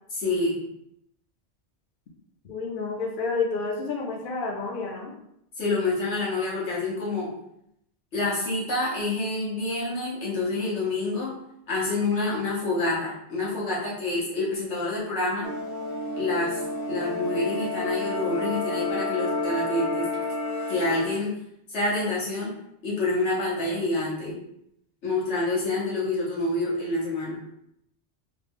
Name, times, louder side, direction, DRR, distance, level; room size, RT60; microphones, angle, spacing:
voice 1, 0.1-0.6 5.6-7.3 8.1-11.3 11.7-15.5 16.2-16.6 16.9-20.1 20.7-21.3 21.7-22.5 22.8-24.4 25.0-27.4, left 2 dB, 80° left, -6 dB, 1.5 m, -27 dB
voice 2, 2.4-5.1, left 4 dB, 55° left, 0 dB, 0.7 m, -29 dB
sound 1, 15.4-21.3, left 2 dB, 55° right, 0.3 m, -30 dB
3.2 x 2.3 x 3.5 m, 0.77 s
omnidirectional pair, 1.2 m